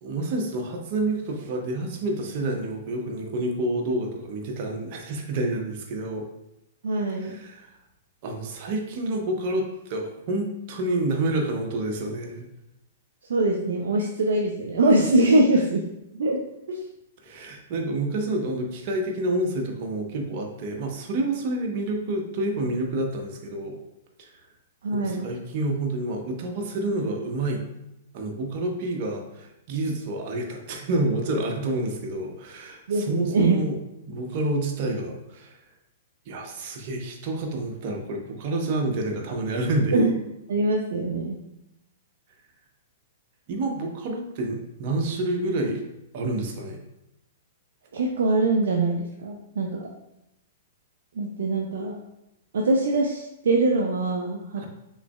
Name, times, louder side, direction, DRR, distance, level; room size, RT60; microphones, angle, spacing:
voice 1, 0.0-6.3 7.2-7.7 8.2-12.5 17.2-23.8 24.2-24.3 24.9-27.6 28.1-33.8 34.1-35.6 36.3-40.0 43.5-45.8 46.1-46.8 54.5-54.7, right 2 dB, 45° right, 2 dB, 0.8 m, -28 dB
voice 2, 6.8-7.3 13.3-15.8 16.1-16.4 16.7-16.8 24.8-25.3 32.9-33.6 39.9-40.1 40.5-41.4 47.9-49.9 51.2-52.0 52.5-54.6, right 2 dB, 65° right, 0 dB, 0.5 m, -23 dB
6.0 x 3.2 x 2.2 m, 0.86 s
figure-of-eight pair, 110°, 0 cm